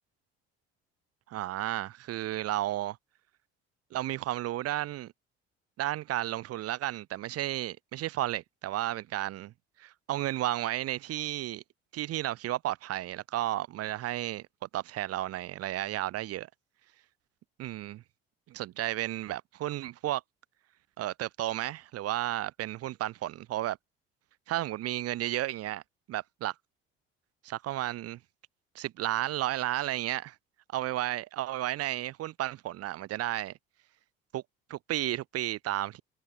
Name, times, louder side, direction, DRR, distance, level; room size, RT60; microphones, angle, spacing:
voice 1, 1.3-3.0 3.9-5.1 5.8-9.5 9.8-11.6 11.9-14.5 14.7-16.5 17.6-18.0 18.5-20.2 21.0-23.8 24.5-25.8 26.1-26.5 27.4-28.2 28.7-30.4 30.7-33.5 34.3-34.4 34.7-36.0, right 14 dB, 50° right, 0.6 m, -33 dB
hypercardioid pair, 60°, 32 cm